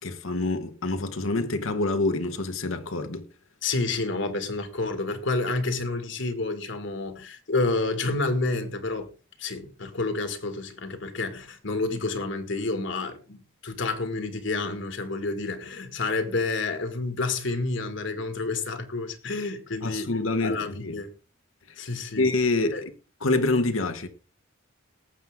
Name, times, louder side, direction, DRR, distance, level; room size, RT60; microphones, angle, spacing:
voice 1, 0.0-3.2 19.8-21.0 22.2-22.9 23.2-24.1, left 2 dB, 85° left, 1.3 m, -26 dB
voice 2, 3.6-9.1 9.4-20.1 20.4-21.1 21.8-22.3 22.7-22.8, left 3 dB, 65° left, 1.9 m, -29 dB
18.5 x 7.6 x 3.6 m
head